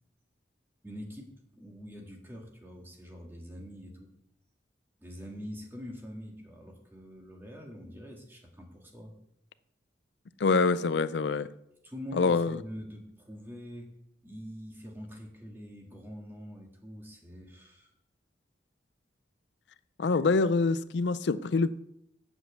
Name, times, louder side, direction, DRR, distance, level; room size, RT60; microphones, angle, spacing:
voice 1, 0.8-4.1 5.0-9.1 11.8-13.9 14.2-17.9, equal, 10° right, 1.8 m, -44 dB
voice 2, 10.4-11.5 12.1-12.6 20.0-21.8, left 4 dB, 75° left, 0.4 m, -25 dB
8.1 x 7.3 x 8.0 m
head